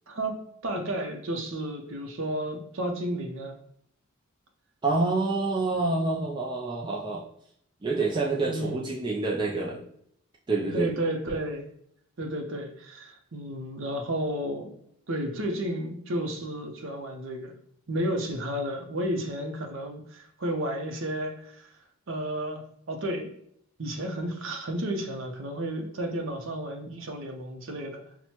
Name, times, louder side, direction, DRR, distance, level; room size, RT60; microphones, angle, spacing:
voice 1, 0.1-3.6 8.5-8.9 10.7-11.7 12.2-14.8 15.1-17.5 17.9-21.7 22.1-23.3 23.8-28.0, right 1 dB, 60° right, 4 dB, 0.7 m, -32 dB
voice 2, 4.8-7.2 7.8-9.8 10.5-10.9, right 3 dB, 20° right, -3 dB, 0.3 m, -27 dB
5.9 x 2.2 x 2.8 m, 0.70 s
head